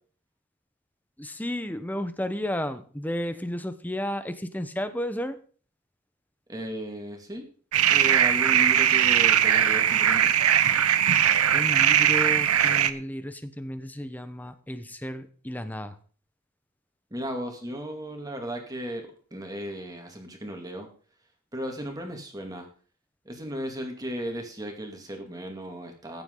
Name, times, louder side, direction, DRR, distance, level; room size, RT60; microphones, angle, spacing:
voice 1, 1.2-5.4 11.5-16.0, equal, 10° left, 11 dB, 1.0 m, -33 dB
voice 2, 6.5-7.4 7.9-10.3 17.1-20.9 21.5-22.7 23.2-26.2, equal, 15° right, 2 dB, 2.4 m, -35 dB
sound 1, 7.7-12.9, right 10 dB, 85° right, 0.9 m, -20 dB
15.5 x 10.5 x 3.9 m, 0.43 s
head